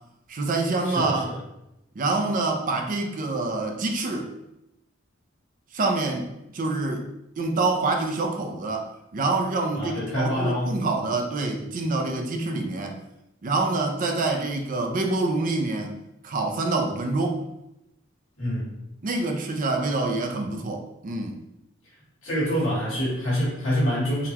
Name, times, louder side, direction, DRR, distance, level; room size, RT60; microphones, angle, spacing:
voice 1, 0.3-1.3 1.9-4.3 5.7-6.3 6.5-7.1 7.4-13.0 13.4-15.9 16.2-17.4 19.0-21.4, right 3 dB, 40° right, 3 dB, 0.5 m, -26 dB
voice 2, 0.8-1.4 9.7-10.8 18.4-18.8 22.2-24.3, equal, 70° left, -7 dB, 1.3 m, -26 dB
3.7 x 2.2 x 2.9 m, 0.87 s
head